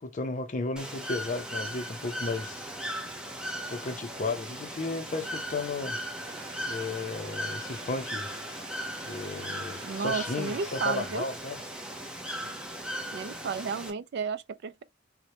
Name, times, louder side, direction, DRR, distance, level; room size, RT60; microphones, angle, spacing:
voice 1, 0.0-2.7 3.7-6.0 6.7-8.3 9.0-11.6, left 3 dB, 40° left, 0.5 m, -34 dB
Bird / Water, 0.8-13.9, equal, 5° right, 0.6 m, -37 dB
sound 1, 6.2-11.4, right 2 dB, 35° right, 1.9 m, -48 dB
voice 2, 9.8-11.3 13.1-14.8, right 5 dB, 60° right, 0.3 m, -33 dB
3.9 x 2.1 x 2.9 m
head